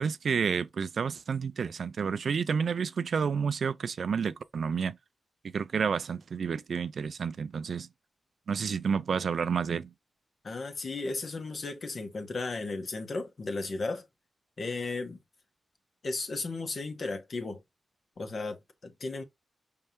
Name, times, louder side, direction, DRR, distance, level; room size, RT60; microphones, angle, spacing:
voice 1, 0.0-5.0 5.4-7.9 8.5-9.9, right 6 dB, 75° right, 0.4 m, -30 dB
voice 2, 10.4-14.0 14.6-15.2 16.0-17.6 18.2-19.2, left 3 dB, 55° left, 1.4 m, -35 dB
5.4 x 3.2 x 3.0 m
wide cardioid pair, 95°, 0 cm